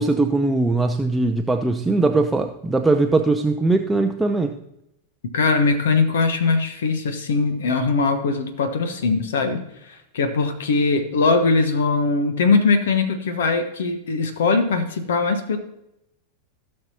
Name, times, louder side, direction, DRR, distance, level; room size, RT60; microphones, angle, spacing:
voice 1, 0.0-4.6, right 2 dB, 10° right, 5 dB, 0.6 m, -20 dB
voice 2, 5.3-15.6, left 4 dB, 60° left, 9 dB, 1.1 m, -21 dB
16.0 x 6.6 x 2.9 m, 0.82 s
figure-of-eight pair, 90°, 0 cm